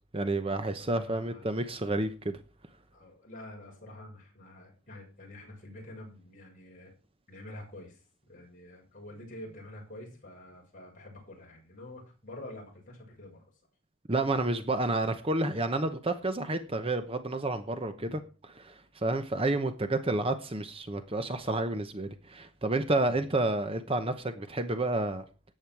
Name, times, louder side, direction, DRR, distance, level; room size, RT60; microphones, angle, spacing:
voice 1, 0.1-2.4 14.1-25.2, right 2 dB, 25° right, 0.9 m, -30 dB
voice 2, 0.8-1.5 2.9-6.9 7.3-13.4 17.9-18.2, left 1 dB, 35° left, 6.5 m, -47 dB
14.0 x 9.4 x 4.7 m
head